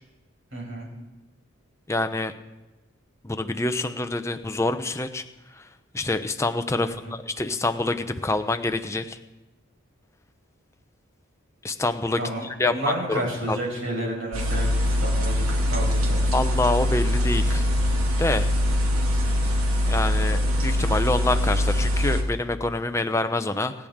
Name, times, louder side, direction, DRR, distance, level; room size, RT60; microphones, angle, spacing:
voice 1, 0.5-0.9 6.8-7.1 12.2-16.2, right 1 dB, 70° right, -2 dB, 5.6 m, -31 dB
voice 2, 1.9-2.3 3.2-5.2 5.9-9.2 11.6-12.2 12.6-13.6 16.3-17.7 18.2-18.5 19.9-23.7, left 2 dB, 15° left, 8 dB, 0.6 m, -26 dB
sound 1, 14.3-22.2, left 1 dB, 90° right, 2.3 m, -23 dB
25.5 x 10.0 x 3.7 m, 1.1 s
head